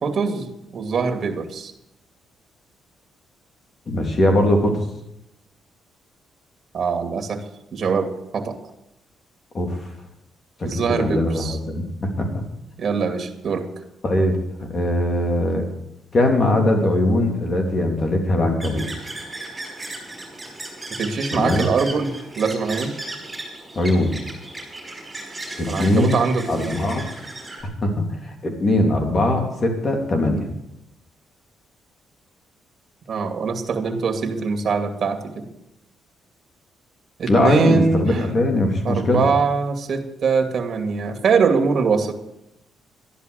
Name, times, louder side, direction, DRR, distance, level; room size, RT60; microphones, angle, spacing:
voice 1, 0.0-1.7 6.7-7.4 7.7-8.1 8.3-8.6 10.6-11.6 12.8-13.7 21.0-23.0 25.7-26.8 33.1-35.4 37.2-38.2 38.8-42.1, right 5 dB, 50° right, 5 dB, 2.4 m, -22 dB
voice 2, 3.9-4.7 9.5-9.8 10.6-12.3 14.0-15.6 16.1-18.9 21.3-21.6 23.7-24.1 25.6-26.2 26.5-27.0 27.8-30.5 37.3-39.3, left 1 dB, 40° left, 3 dB, 3.4 m, -20 dB
sound 1, 18.6-27.6, right 2 dB, 20° right, 5.4 m, -35 dB
13.0 x 11.0 x 6.6 m, 0.86 s
cardioid pair, 90°, 0 cm